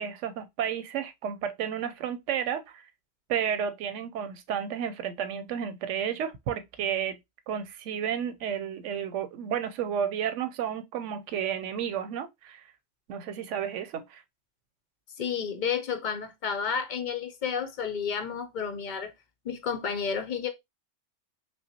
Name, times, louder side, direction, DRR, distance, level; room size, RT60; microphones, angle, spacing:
voice 1, 0.0-2.8 3.3-7.2 7.5-12.6 13.1-14.2, right 8 dB, 90° right, 0.9 m, -32 dB
voice 2, 15.2-19.1 19.4-20.5, left 6 dB, 55° left, 0.6 m, -31 dB
5.4 x 2.0 x 2.7 m
omnidirectional pair, 1.2 m